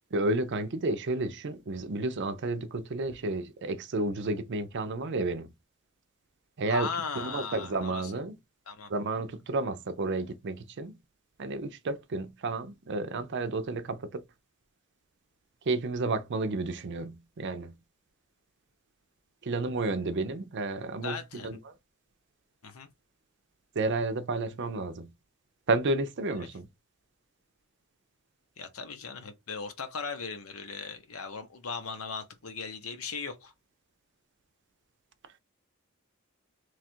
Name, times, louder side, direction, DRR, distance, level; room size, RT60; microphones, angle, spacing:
voice 1, 0.1-5.5 6.6-6.9 7.2-8.3 8.9-10.9 11.4-14.2 15.7-17.7 19.4-21.2 21.4-21.6 23.8-25.1 25.7-26.7, right 2 dB, 55° right, 0.5 m, -31 dB
voice 2, 6.6-8.1 8.7-8.9 21.0-21.6 22.6-22.9 26.4-26.5 28.6-33.5, left 5 dB, 75° left, 0.8 m, -38 dB
3.1 x 2.4 x 4.3 m
head